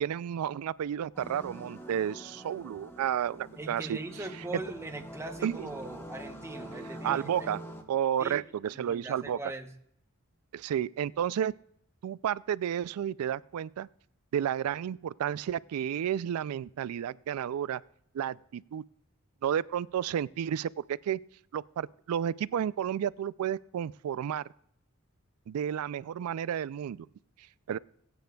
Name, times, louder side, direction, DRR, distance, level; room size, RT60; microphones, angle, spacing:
voice 1, 0.0-4.0 5.4-5.7 7.0-7.6 7.9-9.4 10.5-11.5 12.0-13.9 14.3-17.8 18.1-18.8 19.4-21.2 21.5-24.4 25.5-27.1 27.7-27.8, right 9 dB, 90° right, 21 dB, 0.3 m, -31 dB
sound 1, 1.1-7.8, right 1 dB, 10° left, 1.1 m, -45 dB
voice 2, 3.6-7.5 8.2-8.4 8.7-9.7, right 2 dB, 15° right, 6 dB, 0.8 m, -41 dB
21.0 x 9.2 x 2.3 m, 0.69 s
head